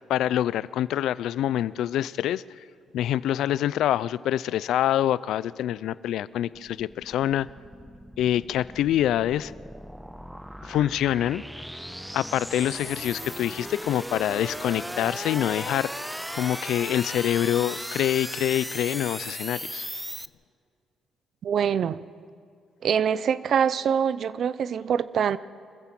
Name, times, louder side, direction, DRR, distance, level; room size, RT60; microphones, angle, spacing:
voice 1, 0.1-2.4 2.9-7.5 8.2-9.5 10.6-11.4 12.1-15.9 16.3-19.9, left 12 dB, 80° left, 19 dB, 0.4 m, -25 dB
sound 1, 6.3-20.3, equal, ahead, 0.5 m, -37 dB
voice 2, 21.4-22.0 22.8-25.4, right 8 dB, 60° right, 17 dB, 0.6 m, -24 dB
25.0 x 15.0 x 7.6 m, 2.3 s
cardioid pair, 90°, 0 cm